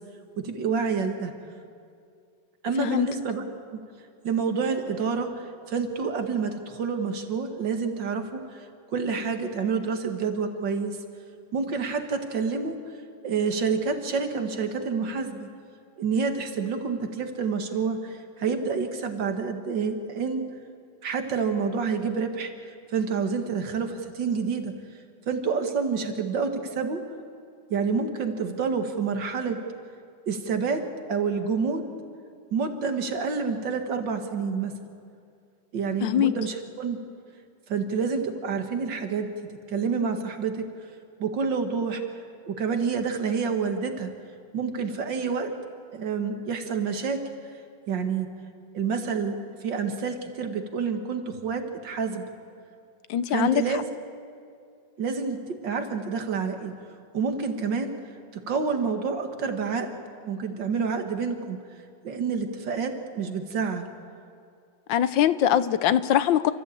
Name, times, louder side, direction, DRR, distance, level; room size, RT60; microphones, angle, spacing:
voice 1, 0.4-1.3 2.6-3.4 3.7-3.8 4.2-11.0 11.5-12.8 13.2-15.5 16.0-20.4 21.0-22.5 22.9-24.7 25.3-27.0 27.7-29.6 30.3-31.8 32.5-34.7 35.7-37.0 37.7-40.7 41.2-42.0 42.5-44.1 44.5-45.5 45.9-47.2 47.9-48.3 48.7-52.2 53.3-53.8 55.0-55.4 55.6-56.7 57.1-57.9 58.5-60.0 60.2-61.6 62.0-63.9, right 5 dB, 70° right, 5 dB, 2.3 m, -28 dB
voice 2, 36.0-36.3 53.1-53.6 64.9-66.5, left 10 dB, 80° left, 14 dB, 1.4 m, -22 dB
29.0 x 14.5 x 8.5 m, 2.4 s
omnidirectional pair, 2.0 m